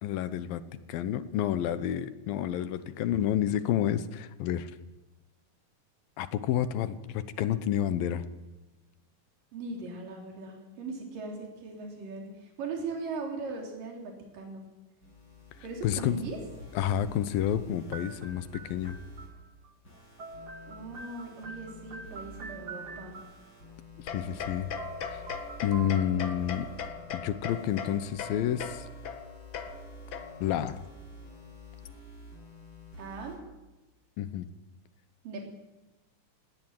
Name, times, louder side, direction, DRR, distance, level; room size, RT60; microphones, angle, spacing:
voice 1, 0.0-0.6 0.9-4.7 6.2-8.3 15.8-16.2 16.7-19.0 24.0-24.7 25.1-25.2 25.6-26.7 27.1-28.9 30.4-30.8 34.2-34.5, left 10 dB, 90° left, 14 dB, 2.9 m, -29 dB
voice 2, 9.5-14.7 15.6-16.4 20.7-23.2 33.0-33.4 35.2-35.4, right 3 dB, 70° right, 1 dB, 5.2 m, -39 dB
sound 1, 15.0-19.3 19.8-33.4, left 1 dB, 30° left, 7.5 m, -49 dB
sound 2, 17.9-19.7 19.9-23.6 24.5-24.6 24.8-26.9, right 4 dB, 40° right, 1.7 m, -45 dB
sound 3, 24.1-30.6, left 6 dB, 65° left, 1.2 m, -40 dB
19.0 x 18.0 x 9.1 m, 1.1 s
omnidirectional pair, 4.0 m